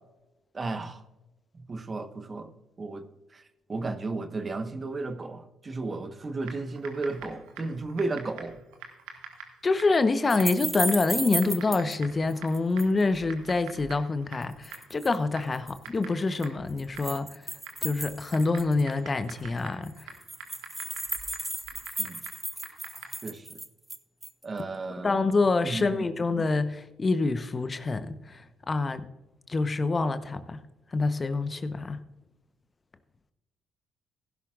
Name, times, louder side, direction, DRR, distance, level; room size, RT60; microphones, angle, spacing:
voice 1, 0.5-1.0 1.5-2.5 2.8-3.1 3.3-3.4 3.7-8.6 22.0-22.2 23.2-23.6 24.4-25.2 25.6-26.1, right 3 dB, 35° right, 9 dB, 1.2 m, -34 dB
Typing, 6.4-23.3, right 5 dB, 75° right, 1.8 m, -47 dB
voice 2, 9.6-17.3 17.8-20.1 25.0-28.4 28.7-29.0 29.5-30.6 30.9-32.0, left 3 dB, 35° left, 11 dB, 0.9 m, -26 dB
sound 1, 10.3-11.9 12.3-13.0 14.4-15.2 15.5-15.8 16.4-18.9 19.3-19.4 19.6-19.7 19.9-24.4, right 1 dB, 10° right, 0.8 m, -35 dB
17.0 x 11.0 x 2.5 m, 1.0 s
hypercardioid pair, 50°, 0 cm